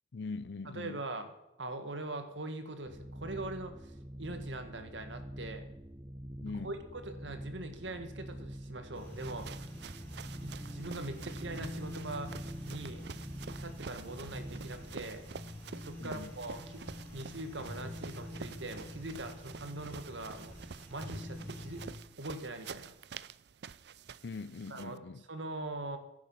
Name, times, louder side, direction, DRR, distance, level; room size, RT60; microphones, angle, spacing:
voice 1, 0.1-1.0 6.4-6.7 16.0-16.3 24.2-25.2, left 4 dB, 70° left, 0.5 m, -42 dB
voice 2, 0.7-1.3 1.6-5.7 6.5-9.7 10.4-12.3 12.7-13.0 13.5-15.2 15.8-16.8 17.1-21.8 22.2-22.9 24.7-26.0, right 2 dB, 85° right, 1.9 m, -42 dB
sound 1, 2.9-15.0, right 1 dB, 20° right, 0.9 m, -46 dB
sound 2, 8.9-21.9, left 1 dB, 10° left, 4.2 m, -46 dB
sound 3, 9.0-25.0, right 6 dB, 60° right, 0.5 m, -49 dB
15.5 x 10.5 x 5.8 m
head